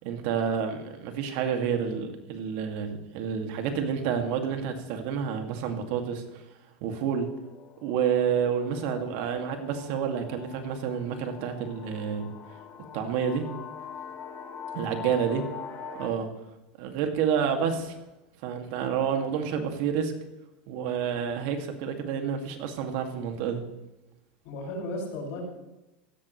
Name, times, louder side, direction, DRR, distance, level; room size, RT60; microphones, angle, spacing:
voice 1, 0.0-6.4 6.8-7.3 7.8-12.3 12.9-13.5 14.7-15.4 16.0-16.3 16.8-17.9 18.4-20.1 20.7-23.6, right 7 dB, 65° right, 5 dB, 2.4 m, -29 dB
sound 1, 7.1-16.1, left 6 dB, 45° left, 2.6 m, -43 dB
voice 2, 24.4-25.4, left 1 dB, 65° left, -1 dB, 6.0 m, -35 dB
16.5 x 13.5 x 3.3 m, 1.0 s
hypercardioid pair, 110°, 6 cm